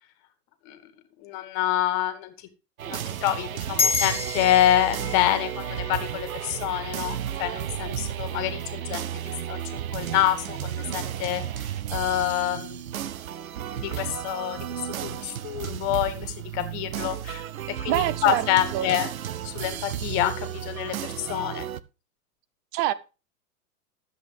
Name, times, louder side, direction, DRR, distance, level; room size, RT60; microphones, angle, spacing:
voice 1, 1.2-2.3 2.8-9.0 9.5-9.6 9.9-12.8 13.7-14.7 15.0-17.4 17.8-19.1 19.4-21.7, left 12 dB, 35° left, 2.1 m, -27 dB
sound 1, 2.8-21.8, right 10 dB, 60° right, 0.9 m, -33 dB
sound 2, 3.8-8.5, left 5 dB, 10° left, 1.4 m, -31 dB
voice 2, 17.8-18.5 18.7-18.9 22.7-22.9, right 14 dB, 25° right, 0.7 m, -25 dB
13.5 x 8.1 x 3.4 m
figure-of-eight pair, 100°, 47 cm